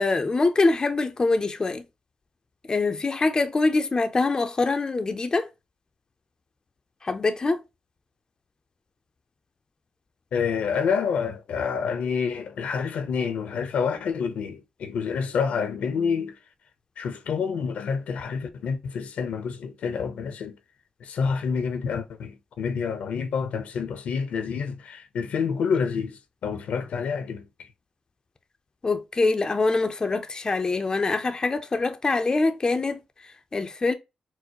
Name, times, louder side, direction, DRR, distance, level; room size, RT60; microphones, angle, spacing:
voice 1, 0.0-1.8 2.7-5.5 7.0-7.6 28.8-33.9, left 3 dB, 35° left, 0.5 m, -24 dB
voice 2, 10.3-16.4 17.0-20.5 21.0-27.7, left 6 dB, 80° left, 0.7 m, -28 dB
4.5 x 2.1 x 2.8 m
cardioid pair, 65°, 2 cm